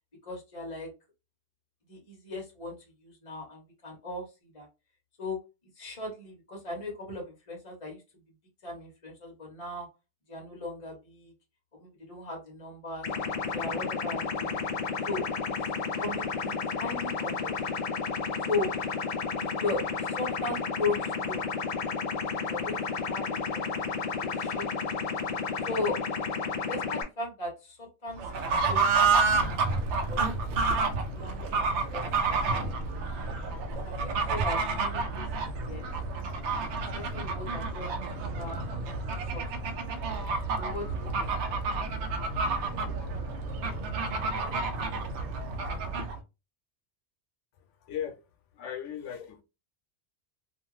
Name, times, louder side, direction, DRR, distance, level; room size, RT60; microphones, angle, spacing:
voice 1, 0.2-0.9 1.9-4.7 5.2-5.4 5.8-8.0 8.6-9.9 10.3-11.3 11.8-13.1 13.5-14.6 15.1-15.7 16.0-17.5 18.5-18.7 19.3-21.5 22.5-23.8 24.2-24.9 25.7-26.0 26.7-29.2 30.1-30.2 30.7-33.4 33.8-35.3 35.6-35.9 36.9-38.6 39.3-39.4 40.6-41.3, left 3 dB, 35° left, 0.8 m, -37 dB
sound 1, 13.0-27.0, left 5 dB, 65° left, 0.3 m, -32 dB
Fowl / Bird, 28.1-46.2, right 4 dB, 75° right, 0.8 m, -29 dB
voice 2, 47.8-48.2 48.5-49.4, left 9 dB, 90° left, 0.9 m, -36 dB
2.5 x 2.4 x 3.0 m
omnidirectional pair, 1.2 m